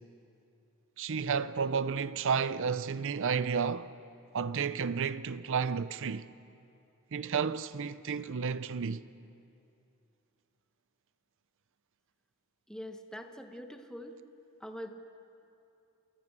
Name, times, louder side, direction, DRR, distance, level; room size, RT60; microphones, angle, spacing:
voice 1, 1.0-3.9 4.3-6.3 7.1-9.0, right 6 dB, 60° right, 0.6 m, -31 dB
voice 2, 12.7-14.2 14.6-14.9, equal, 5° left, 1.3 m, -43 dB
28.0 x 17.5 x 7.4 m
head